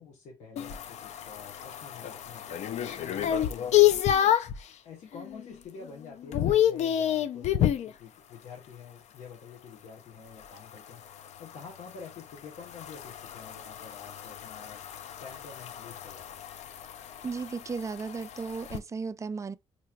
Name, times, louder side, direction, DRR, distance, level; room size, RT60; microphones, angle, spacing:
voice 1, 0.0-2.6 3.0-4.4 4.8-14.8 15.2-16.4, left 5 dB, 85° left, 1.0 m, -48 dB
sound 1, 0.6-4.6 5.1-5.5 5.8-7.9 10.4-18.8, left 11 dB, 70° left, 0.4 m, -29 dB
voice 2, 17.2-19.6, right 4 dB, 25° right, 0.3 m, -35 dB
4.4 x 2.8 x 2.3 m
cardioid pair, 70°, 12 cm